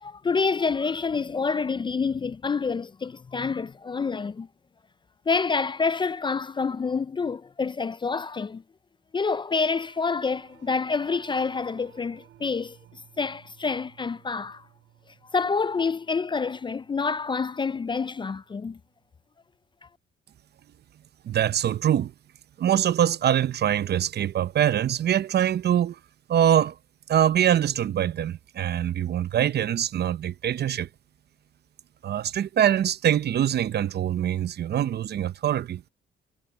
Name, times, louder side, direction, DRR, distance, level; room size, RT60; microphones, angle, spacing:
voice 1, 0.0-4.5 5.3-8.6 9.1-12.8 13.2-14.6 15.3-18.8, left 4 dB, 25° left, 0.4 m, -27 dB
Singing / Musical instrument, 9.5-19.1, right 12 dB, 80° right, 4.1 m, -57 dB
voice 2, 21.2-22.1 22.6-26.0 26.3-26.8 27.1-30.9 32.0-35.9, right 10 dB, 55° right, 0.7 m, -24 dB
cardioid pair, 90°, 20 cm